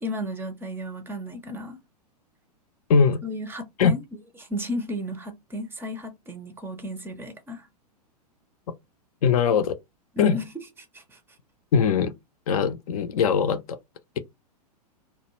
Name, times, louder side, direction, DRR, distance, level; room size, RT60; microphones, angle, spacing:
voice 1, 0.0-1.8 3.2-4.0 4.4-7.7 10.1-10.6 10.9-11.2, equal, 10° right, 0.5 m, -33 dB
voice 2, 2.9-3.2 3.8-3.9 9.2-9.8 10.2-10.4 11.7-12.1 12.5-13.8, left 6 dB, 60° left, 0.5 m, -21 dB
2.2 x 2.1 x 3.0 m
hypercardioid pair, 105°, 21 cm